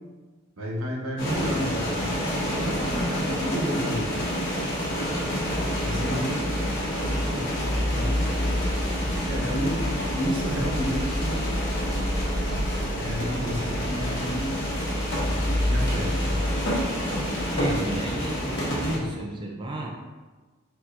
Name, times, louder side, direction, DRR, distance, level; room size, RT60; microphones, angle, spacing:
voice 1, 0.6-4.2 5.8-6.6 7.0-7.5 7.9-8.4 9.2-11.7 12.8-14.6 15.7-16.5 17.6-18.2 18.8-19.0, equal, 85° right, -2 dB, 0.9 m, -31 dB
sound 1, 1.2-19.0, equal, 60° left, 1.2 m, -27 dB
voice 2, 2.6-2.9 5.0-5.8 17.5-19.9, right 2 dB, 25° right, 0 dB, 0.4 m, -36 dB
4.3 x 4.2 x 2.6 m, 1.3 s
head